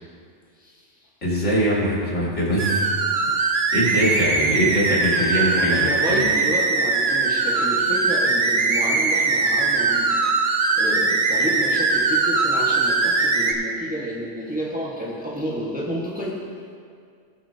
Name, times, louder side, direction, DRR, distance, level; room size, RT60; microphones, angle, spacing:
voice 1, 1.2-2.8 3.3-6.2, equal, 75° left, -7 dB, 2.9 m, -22 dB
sound 1, 2.6-13.5, right 4 dB, 50° right, 0.8 m, -21 dB
voice 2, 5.4-16.4, equal, 5° right, -5 dB, 1.5 m, -30 dB
18.5 x 7.3 x 2.8 m, 2.3 s
omnidirectional pair, 1.2 m